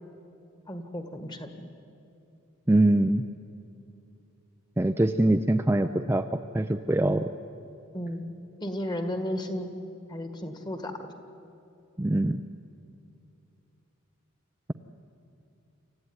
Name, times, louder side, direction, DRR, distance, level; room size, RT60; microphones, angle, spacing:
voice 1, 0.7-1.7 7.9-9.7 10.1-10.9, equal, 20° left, 7 dB, 1.7 m, -34 dB
voice 2, 2.7-3.2 4.8-7.3 12.0-12.4, right 1 dB, 10° right, 7 dB, 0.5 m, -23 dB
27.5 x 15.0 x 9.6 m, 2.6 s
head